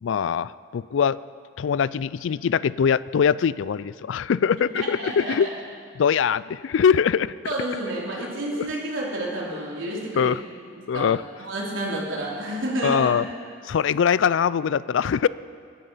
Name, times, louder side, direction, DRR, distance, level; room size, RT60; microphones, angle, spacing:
voice 1, 0.0-1.2 1.6-5.5 5.9-7.5 8.6-8.7 9.5-9.6 9.9-10.4 10.9-11.2 12.8-13.3 13.6-15.3, left 7 dB, 75° left, 19 dB, 0.4 m, -22 dB
voice 2, 4.7-5.5 7.5-10.4 10.9-11.1 11.4-13.1, right 1 dB, 85° right, -4 dB, 3.8 m, -30 dB
23.5 x 10.5 x 5.6 m, 2.3 s
head